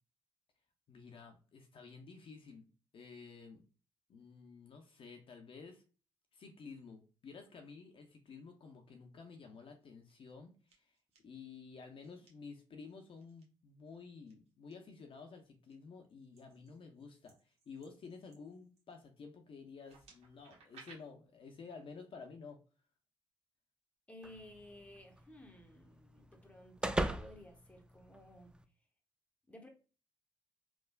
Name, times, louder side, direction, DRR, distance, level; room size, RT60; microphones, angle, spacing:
voice 1, 0.9-2.6 2.9-3.6 4.1-5.8 6.3-10.9 11.2-22.6, left 5 dB, 55° left, 0.6 m, -52 dB
sound 1, 9.8-10.3 10.7-11.2 12.0-12.3 13.2-13.4 14.3-14.7 15.3-15.7 16.3-19.0 19.7-21.0, right 4 dB, 65° right, 0.9 m, -62 dB
voice 2, 24.1-28.6 29.5-29.7, left 1 dB, 10° left, 0.8 m, -55 dB
sound 2, 24.2-28.6, right 1 dB, 10° right, 0.3 m, -41 dB
3.3 x 2.2 x 2.2 m
supercardioid pair, 60°, 11 cm